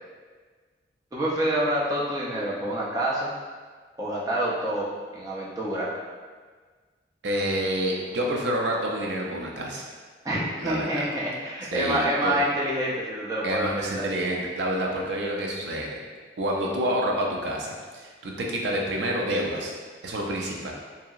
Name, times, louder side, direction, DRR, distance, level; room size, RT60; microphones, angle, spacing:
voice 1, 1.1-3.4 4.0-5.9 10.2-14.1, right 1 dB, 20° right, -6 dB, 0.4 m, -27 dB
voice 2, 7.2-9.9 10.6-11.0 11.7-12.4 13.4-15.9 16.4-19.7 20.0-20.7, right 1 dB, 75° right, -1 dB, 0.4 m, -28 dB
2.7 x 2.7 x 2.4 m, 1.5 s
head